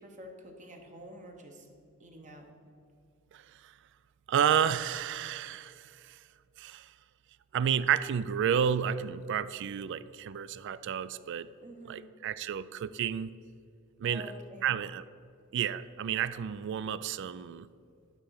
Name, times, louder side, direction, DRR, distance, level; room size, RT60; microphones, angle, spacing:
voice 1, 0.0-1.7 2.0-2.5 11.6-12.0 14.0-14.7, equal, 35° right, 2 dB, 0.9 m, -48 dB
voice 2, 3.3-3.7 4.3-6.2 6.6-6.9 7.5-11.5 11.9-13.3 14.0-14.3 14.6-15.0 15.5-17.7, right 8 dB, 55° right, 16 dB, 0.3 m, -31 dB
11.5 x 3.8 x 6.3 m, 2.4 s
head